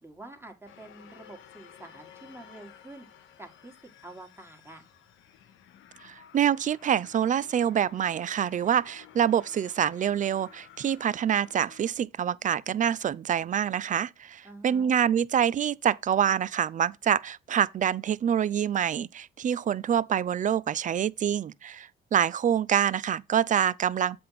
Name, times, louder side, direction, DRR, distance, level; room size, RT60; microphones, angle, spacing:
voice 1, 0.0-3.1 3.4-3.7 4.0-4.8 14.4-14.9, right 2 dB, 10° right, 1.6 m, -47 dB
sound 1, 0.7-11.9, left 9 dB, 75° left, 0.8 m, -54 dB
voice 2, 6.0-24.2, right 9 dB, 40° right, 0.4 m, -26 dB
7.7 x 3.5 x 5.7 m
cardioid pair, 90°, 20 cm